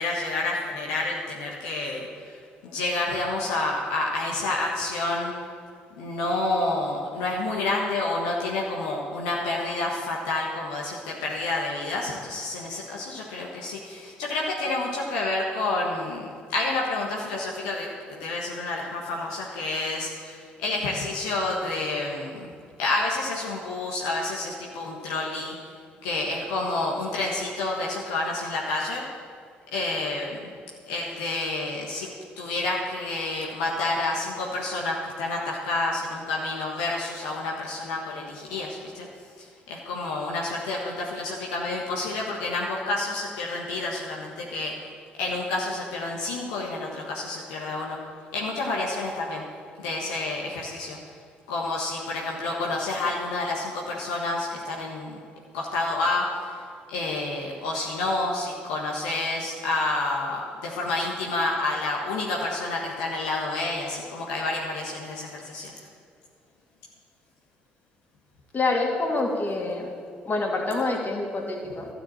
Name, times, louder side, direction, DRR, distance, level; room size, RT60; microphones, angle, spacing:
voice 1, 0.0-2.4 2.6-5.3 6.0-22.5 22.8-25.5 26.0-29.0 29.7-30.5 30.9-32.1 32.4-39.1 39.4-44.7 45.2-48.0 48.3-49.4 49.8-51.0 51.5-55.2 55.5-56.5 56.9-65.7, left 2 dB, 75° left, -3 dB, 1.5 m, -29 dB
voice 2, 68.5-69.9 70.3-71.9, left 2 dB, 40° left, 0 dB, 2.7 m, -26 dB
12.5 x 7.1 x 8.8 m, 2.3 s
hypercardioid pair, 50°, 5 cm